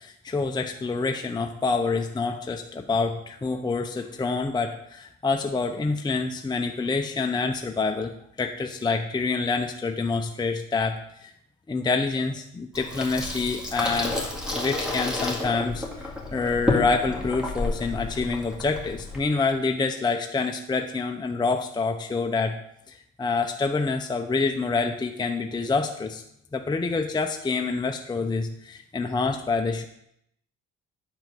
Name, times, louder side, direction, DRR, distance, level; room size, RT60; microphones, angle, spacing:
voice 1, 0.0-11.3 11.7-14.2 14.5-22.6 22.9-26.2 26.5-29.9, left 4 dB, 15° left, 4 dB, 0.6 m, -27 dB
Water tap faucet / Sink (filling or washing), 12.7-19.2, left 2 dB, 5° right, 1.9 m, -30 dB
9.4 x 4.6 x 5.2 m, 0.75 s
cardioid pair, 90°, 30 cm